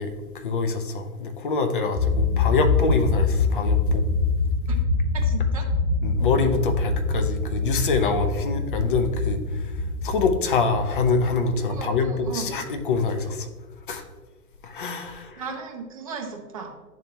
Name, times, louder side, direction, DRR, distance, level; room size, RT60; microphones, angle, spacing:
voice 1, 0.0-4.0 6.0-9.4 10.0-13.5 13.9-14.0 14.6-15.4, left 4 dB, 35° left, 7 dB, 0.5 m, -25 dB
sound 1, 1.9-13.2, left 3 dB, 85° left, 1.8 m, -25 dB
voice 2, 5.1-5.7 11.7-12.5 15.4-16.8, right 5 dB, 25° right, 1 dB, 0.5 m, -35 dB
10.5 x 3.6 x 2.8 m, 1.3 s
hypercardioid pair, 140°, 48 cm